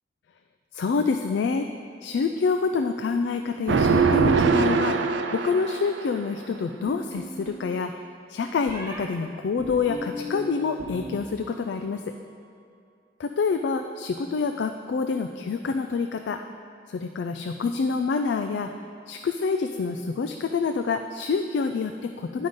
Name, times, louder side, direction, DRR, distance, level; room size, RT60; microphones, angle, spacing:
voice 1, 0.7-1.7 2.0-8.0 8.3-12.0 13.2-16.4 16.9-18.7 19.1-22.5, left 4 dB, 75° left, 6 dB, 0.3 m, -27 dB
sound 1, 3.7-6.0, right 5 dB, 90° right, 0.5 m, -22 dB
sound 2, 6.9-7.7 8.7-9.0 9.6-11.1 11.4-12.0, left 1 dB, 15° right, 0.9 m, -37 dB
8.8 x 5.5 x 5.2 m, 2.3 s
head